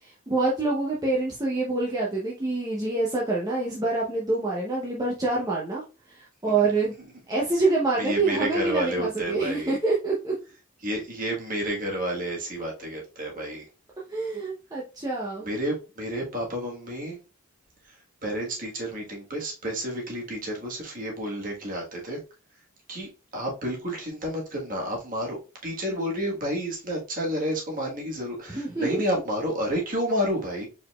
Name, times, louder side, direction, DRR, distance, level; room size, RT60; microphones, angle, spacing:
voice 1, 0.0-6.9 7.3-10.3 14.1-15.5 28.5-29.2, right 3 dB, 15° right, 0.7 m, -26 dB
voice 2, 8.0-9.8 10.8-13.6 15.4-17.2 17.8-18.0 18.2-22.2 22.9-30.7, equal, 40° right, 1.3 m, -30 dB
4.8 x 4.1 x 2.3 m
head